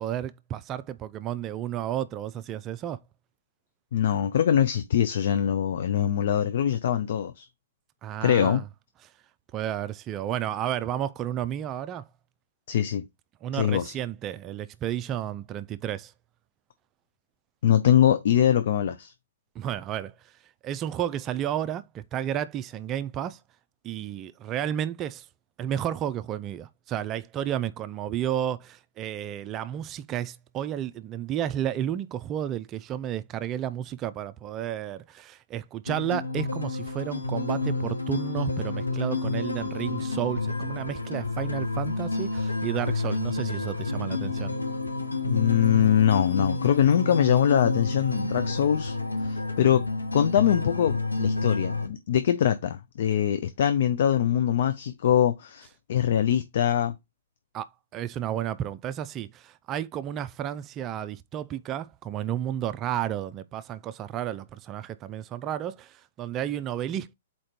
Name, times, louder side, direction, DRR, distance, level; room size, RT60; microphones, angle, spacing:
voice 1, 0.0-3.0 8.0-8.7 9.5-12.0 13.4-16.1 19.6-20.1 20.6-23.4 23.8-25.3 25.6-44.6 57.5-67.1, right 10 dB, 30° right, 0.4 m, -32 dB
voice 2, 3.9-7.5 8.2-8.6 12.7-13.0 13.5-13.9 17.6-19.1 45.2-49.8 50.1-56.9, left 9 dB, 60° left, 0.5 m, -23 dB
sound 1, 35.9-51.9, left 3 dB, 90° left, 1.1 m, -30 dB
5.0 x 4.4 x 4.4 m
figure-of-eight pair, 115°, 0 cm